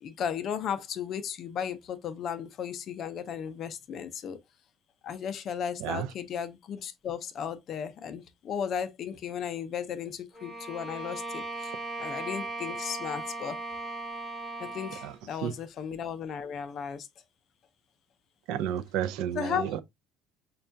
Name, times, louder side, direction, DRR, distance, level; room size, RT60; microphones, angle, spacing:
voice 1, 0.0-4.4 5.0-11.7 12.0-13.6 14.6-17.1 19.3-19.7, left 8 dB, 35° left, 0.4 m, -35 dB
Bowed string instrument, 10.3-15.2, right 2 dB, 15° right, 0.5 m, -37 dB
voice 2, 18.5-19.8, right 10 dB, 70° right, 0.3 m, -31 dB
5.3 x 2.2 x 2.5 m
cardioid pair, 180°, 0 cm